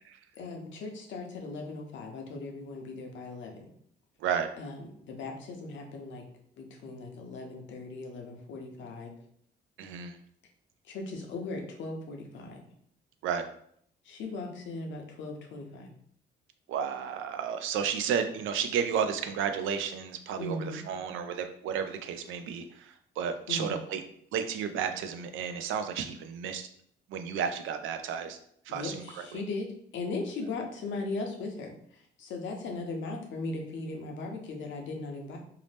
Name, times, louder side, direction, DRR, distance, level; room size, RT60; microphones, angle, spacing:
voice 1, 0.4-3.7 4.6-4.8 5.0-6.2 6.6-9.1 10.9-12.6 14.0-15.9 20.4-20.8 23.5-23.7 28.7-29.7 29.9-31.7 32.2-35.4, left 3 dB, 70° left, 2 dB, 0.7 m, -38 dB
voice 2, 4.2-4.5 9.8-10.2 13.2-13.5 16.7-24.0 24.3-26.7 27.1-28.4 28.6-29.4, right 7 dB, 80° right, 8 dB, 0.4 m, -32 dB
2.7 x 2.0 x 3.3 m, 0.65 s
cardioid pair, 90°, 20 cm